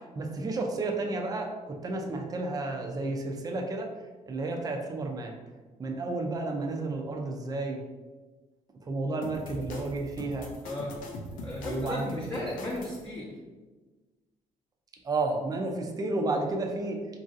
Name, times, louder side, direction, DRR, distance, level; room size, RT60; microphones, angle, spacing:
voice 1, 0.2-3.9 4.3-5.4 5.8-7.8 8.9-10.5 11.6-12.2 15.0-17.0, right 2 dB, 25° right, 2 dB, 0.4 m, -31 dB
sound 1, 9.2-13.0, left 1 dB, 75° left, 0.5 m, -41 dB
voice 2, 10.6-10.9 11.4-13.3, left 1 dB, 15° left, -6 dB, 0.6 m, -35 dB
3.0 x 2.6 x 2.5 m, 1.3 s
cardioid pair, 95°, 14 cm